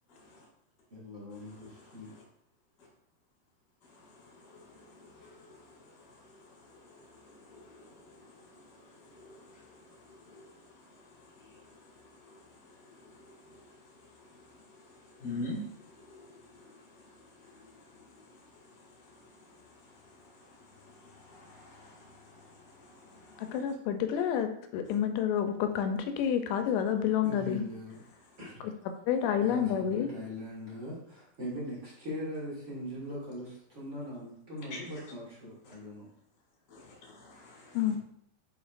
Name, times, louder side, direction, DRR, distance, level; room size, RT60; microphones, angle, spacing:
voice 1, 0.9-2.1 27.2-28.0 28.4-28.7 29.4-36.1 37.9-38.0, equal, 40° right, -7 dB, 1.1 m, -41 dB
voice 2, 4.5-5.5 7.2-8.1 8.4-8.6 9.1-9.5 10.3-10.5 11.4-11.6 12.3-12.4 13.1-13.2 15.2-15.6 15.9-16.4 17.6-17.7 20.8-22.5 22.7-23.4 34.7-34.8 36.7-37.8, left 2 dB, 35° left, -3 dB, 1.9 m, -45 dB
voice 3, 23.4-27.6 29.1-30.1 37.7-38.0, left 9 dB, 85° left, 7 dB, 2.8 m, -29 dB
7.1 x 5.5 x 2.5 m, 0.70 s
omnidirectional pair, 4.9 m